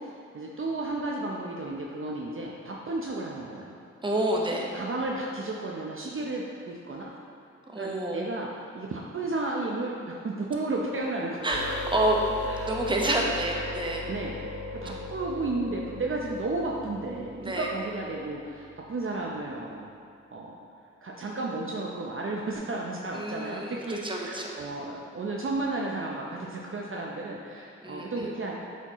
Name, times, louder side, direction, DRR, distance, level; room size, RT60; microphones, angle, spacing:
voice 1, 0.0-3.7 4.7-7.1 7.8-8.5 8.7-11.6 12.5-12.8 14.1-14.4 14.7-19.9 20.3-20.5 21.0-28.5, right 2 dB, 45° right, -2 dB, 0.7 m, -33 dB
voice 2, 4.0-4.7 7.7-8.2 11.4-12.2 12.6-14.1 14.8-14.9 17.4-17.7 23.1-24.5 27.8-28.3, right 1 dB, 15° right, -1 dB, 1.1 m, -28 dB
sound 1, 11.5-19.2 22.5-22.6, left 2 dB, 70° left, 0.9 m, -38 dB
8.1 x 4.2 x 3.0 m, 2.5 s
supercardioid pair, 45°, 31 cm